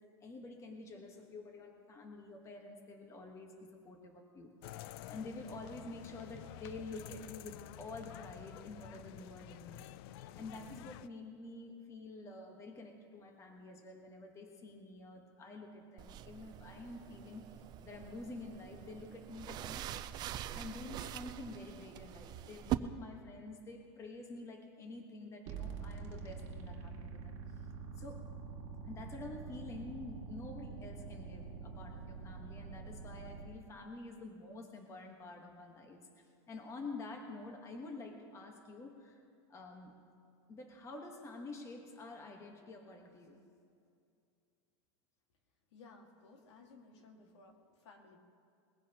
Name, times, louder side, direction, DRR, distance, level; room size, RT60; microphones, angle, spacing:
voice 1, 0.0-4.8 5.1-9.8 10.4-19.9 20.5-27.6 28.0-28.2 28.8-39.2 39.5-39.9 40.5-43.4, left 2 dB, 20° left, 3 dB, 1.3 m, -48 dB
sound 1, 4.6-11.1, left 13 dB, 55° left, 0.4 m, -50 dB
sound 2, 16.0-22.7, right 13 dB, 30° right, 0.4 m, -43 dB
sound 3, 25.5-33.5, right 5 dB, 45° right, 2.0 m, -46 dB
voice 2, 45.7-48.2, left 3 dB, 75° left, 3 dB, 2.0 m, -58 dB
21.5 x 15.5 x 3.0 m, 2.5 s
supercardioid pair, 150°, 15 cm